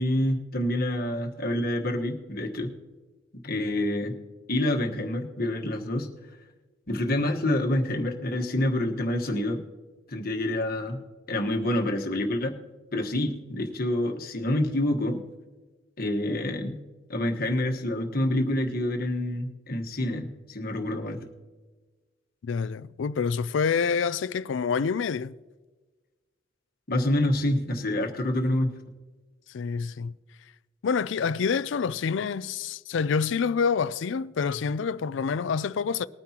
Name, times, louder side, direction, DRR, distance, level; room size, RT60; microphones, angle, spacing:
voice 1, 0.0-2.7 3.4-4.2 4.5-6.1 6.9-9.6 10.1-11.0 11.3-12.6 12.9-15.2 16.0-16.8 17.1-21.2 26.9-28.7, left 1 dB, 50° left, 1.3 m, -27 dB
voice 2, 22.4-25.3 29.5-30.1 30.8-36.1, left 6 dB, 70° left, 0.4 m, -27 dB
20.0 x 9.6 x 2.9 m
head